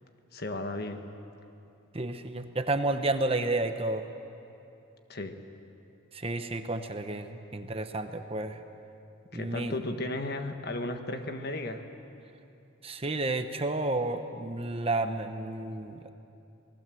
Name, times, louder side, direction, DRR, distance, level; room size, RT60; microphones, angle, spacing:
voice 1, 0.3-1.0 5.1-5.3 9.3-11.8, left 2 dB, 50° left, 6 dB, 1.5 m, -34 dB
voice 2, 1.9-4.1 6.1-8.6 9.3-9.7 12.8-16.1, right 2 dB, 30° right, 7 dB, 1.0 m, -31 dB
28.0 x 19.5 x 7.7 m, 2.8 s
head